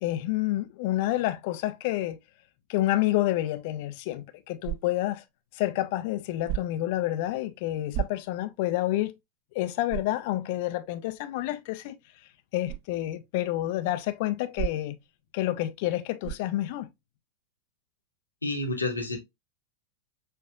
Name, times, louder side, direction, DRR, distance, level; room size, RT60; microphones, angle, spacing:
voice 1, 0.0-2.2 2.7-5.2 5.5-9.1 9.5-12.0 12.5-15.0 15.3-16.9, left 15 dB, 50° left, 0.5 m, -29 dB
sound 1, 4.6-5.2 6.4-6.9 7.9-8.5 9.0-9.1 9.9-10.2 12.6-12.9 14.5-15.1 16.2-16.6, right 15 dB, 45° right, 1.4 m, -34 dB
voice 2, 18.4-19.2, left 2 dB, 80° left, 1.0 m, -29 dB
6.5 x 2.5 x 2.3 m
figure-of-eight pair, 90°, 0 cm